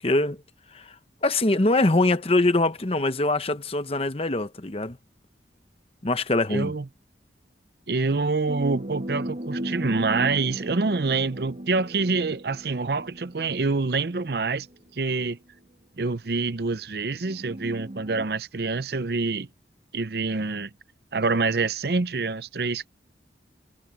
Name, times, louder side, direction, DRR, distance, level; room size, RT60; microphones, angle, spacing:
voice 1, 0.0-0.4 0.7-1.0 1.2-5.0 6.0-6.7, left 2 dB, 35° left, 1.0 m, -23 dB
voice 2, 6.5-6.8 7.9-14.7 15.0-15.4 16.0-19.5 19.9-20.7 21.1-22.9, right 4 dB, 60° right, 0.7 m, -26 dB
sound 1, 8.5-14.4 15.3-15.4 17.2-18.3, right 1 dB, 40° right, 1.3 m, -36 dB
head